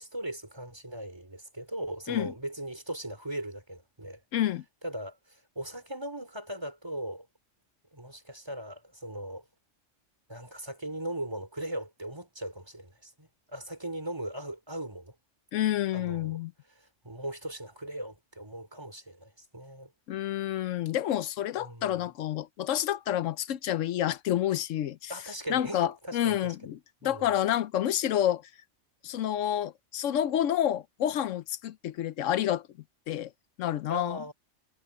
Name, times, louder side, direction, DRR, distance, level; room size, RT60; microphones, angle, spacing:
voice 1, 0.0-4.2 4.8-7.3 7.9-9.4 10.3-15.1 15.9-16.4 16.8-19.9 21.6-22.0 25.1-26.6 27.0-27.3 33.9-34.3, right 1 dB, 20° right, 4.0 m, -39 dB
voice 2, 4.3-4.6 15.5-16.5 20.1-25.1 25.5-28.4 29.0-32.6 33.1-33.3 33.6-34.2, left 11 dB, 85° left, 1.0 m, -29 dB
omnidirectional pair, 1.3 m